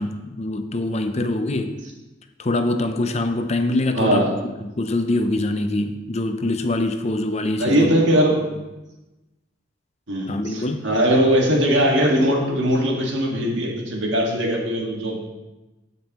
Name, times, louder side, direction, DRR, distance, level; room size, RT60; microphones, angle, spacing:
voice 1, 0.0-1.7 2.4-4.3 4.6-7.9 10.3-10.9, left 2 dB, 35° left, 7 dB, 0.6 m, -24 dB
voice 2, 3.9-4.3 7.6-8.5 10.1-15.2, equal, 75° right, -1 dB, 1.8 m, -20 dB
15.0 x 5.3 x 3.0 m, 1.1 s
head